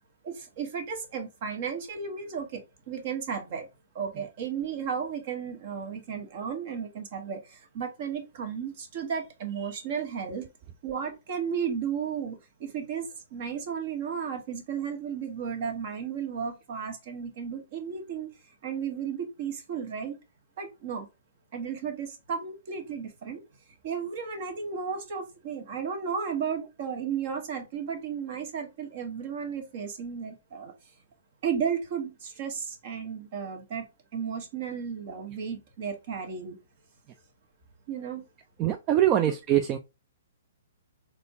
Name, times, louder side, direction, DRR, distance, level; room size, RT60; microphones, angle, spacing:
voice 1, 0.2-3.7 3.9-10.5 10.8-18.3 18.6-20.2 20.6-21.1 21.5-23.4 23.8-30.7 31.4-33.9 34.1-36.6 37.9-38.3, right 7 dB, 50° right, 1.5 m, -34 dB
voice 2, 38.6-39.8, right 11 dB, 30° right, 0.5 m, -23 dB
4.1 x 3.6 x 2.7 m
hypercardioid pair, 125°, 0 cm